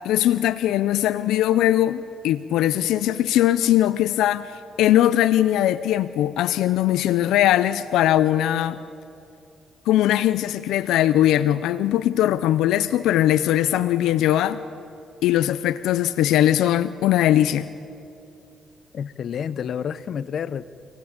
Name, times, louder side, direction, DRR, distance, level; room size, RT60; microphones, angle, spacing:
voice 1, 0.0-4.5 4.8-8.8 9.9-14.6 15.2-17.7, left 12 dB, 90° left, 0.6 m, -20 dB
voice 2, 18.9-20.6, left 7 dB, 60° left, 0.8 m, -29 dB
27.0 x 18.5 x 8.8 m
cardioid pair, 90°, 0 cm